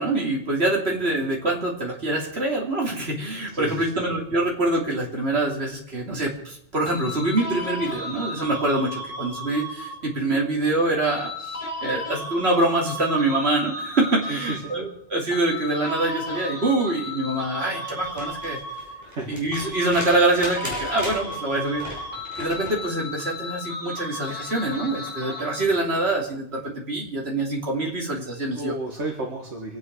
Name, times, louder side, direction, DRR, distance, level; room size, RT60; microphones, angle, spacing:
voice 1, 0.0-11.5 11.8-18.6 19.3-21.8 22.4-28.7, right 2 dB, 65° right, -1 dB, 3.2 m, -25 dB
voice 2, 3.5-3.9 14.3-14.7 19.0-19.4 25.6-25.7 28.5-29.8, right 2 dB, 80° right, 0 dB, 2.2 m, -32 dB
sound 1, 6.9-10.2 11.1-14.9 15.3-19.2 19.5-25.9, left 1 dB, 30° left, 3.1 m, -35 dB
sound 2, 18.0-22.8 24.5-24.6, equal, 15° right, 4.1 m, -37 dB
26.5 x 9.3 x 4.8 m, 0.72 s
omnidirectional pair, 1.2 m